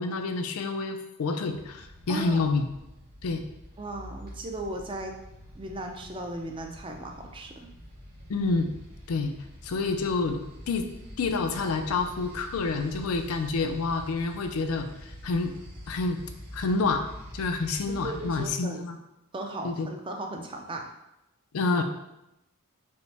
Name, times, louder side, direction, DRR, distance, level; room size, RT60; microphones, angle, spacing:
voice 1, 0.0-2.7 3.2-3.4 8.3-8.7 9.1-9.4 9.6-10.9 11.2-15.5 15.9-16.2 16.5-17.0 17.3-19.0 19.6-19.9 21.5-21.8, left 3 dB, 75° left, 6 dB, 0.4 m, -28 dB
sound 1, 1.4-18.5, equal, 45° right, 1.3 m, -46 dB
voice 2, 2.1-2.4 3.8-5.2 5.6-7.7 18.0-18.8 19.3-20.9, right 1 dB, 25° right, 3 dB, 0.4 m, -36 dB
5.1 x 2.1 x 3.3 m, 0.91 s
head